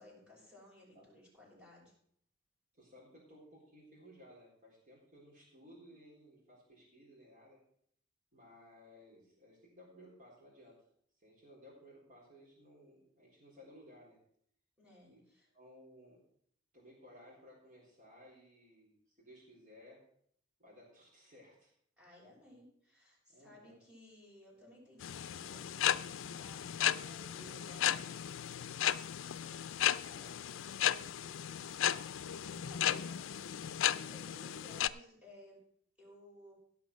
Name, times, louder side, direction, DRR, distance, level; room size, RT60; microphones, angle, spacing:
voice 1, 0.0-1.9 14.8-15.5 22.0-28.0 32.2-33.2 33.8-35.6 36.0-36.5, left 1 dB, 5° right, -5 dB, 6.2 m, -58 dB
voice 2, 2.7-7.6 8.3-10.8 11.2-14.2 15.1-15.2 15.5-16.2 16.7-19.0 19.2-20.0 20.6-21.7 23.3-23.8 26.8-28.6 30.0-31.6, equal, 40° right, -6 dB, 4.1 m, -59 dB
sound 1, 25.0-34.9, left 10 dB, 85° left, 0.4 m, -35 dB
16.5 x 5.8 x 6.3 m, 0.66 s
head